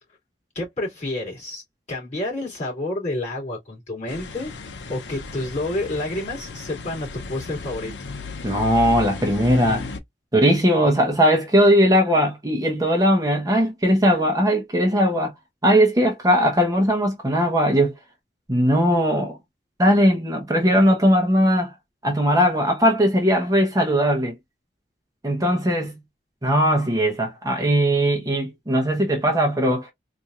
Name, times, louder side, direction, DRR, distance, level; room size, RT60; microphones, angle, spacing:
voice 1, 0.5-1.6 1.9-7.9, left 2 dB, 40° left, 2.7 m, -29 dB
sound 1, 4.1-10.0, left 3 dB, 75° left, 0.7 m, -34 dB
voice 2, 8.4-9.9 10.3-15.3 15.6-17.9 18.5-19.4 19.8-21.7 22.0-24.3 25.2-25.9 26.4-29.9, equal, 20° right, 0.9 m, -19 dB
4.2 x 2.7 x 2.4 m
head